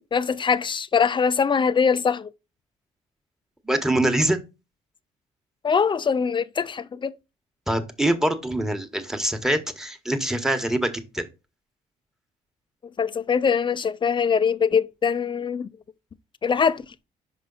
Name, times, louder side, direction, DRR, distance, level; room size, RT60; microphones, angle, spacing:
voice 1, 0.1-2.3 5.6-7.1 13.0-15.7 16.4-16.8, left 6 dB, 30° left, 0.6 m, -22 dB
voice 2, 3.6-4.4 7.7-11.2, right 1 dB, 5° right, 1.4 m, -24 dB
5.5 x 5.2 x 4.0 m
supercardioid pair, 70°, 15 cm